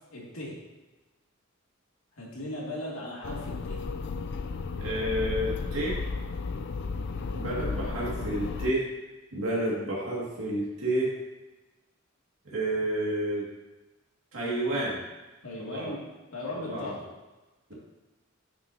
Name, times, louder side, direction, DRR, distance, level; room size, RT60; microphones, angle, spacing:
voice 1, 0.1-0.5 2.2-3.8 15.4-16.0 16.3-17.0, left 1 dB, 85° left, -4 dB, 2.2 m, -37 dB
sound 1, 3.2-8.7, left 4 dB, 55° left, 0.4 m, -33 dB
voice 2, 4.8-6.0 7.3-8.8 9.3-11.1 12.4-13.4 14.3-15.0 15.6-15.9 16.5-16.9, right 1 dB, 85° right, -6 dB, 2.0 m, -30 dB
9.1 x 6.2 x 2.7 m, 1.1 s
head